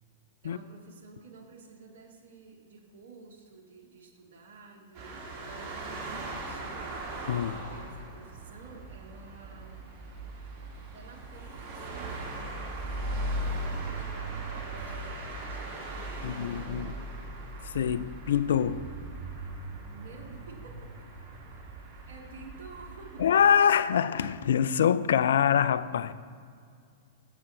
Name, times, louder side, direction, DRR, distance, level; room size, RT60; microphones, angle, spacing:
voice 1, 0.4-9.8 10.9-12.2 12.9-17.3 20.0-20.9 21.5-21.6 22.1-23.2, right 3 dB, 65° right, 1.3 m, -51 dB
sound 1, 4.9-23.4, right 2 dB, 40° right, 2.0 m, -39 dB
voice 2, 7.3-7.6 16.2-16.9 17.7-18.9 23.2-26.1, left 8 dB, 70° left, 0.3 m, -25 dB
sound 2, 13.6-16.6, left 1 dB, 85° left, 1.4 m, -56 dB
6.9 x 5.1 x 6.7 m
figure-of-eight pair, 105°, 0 cm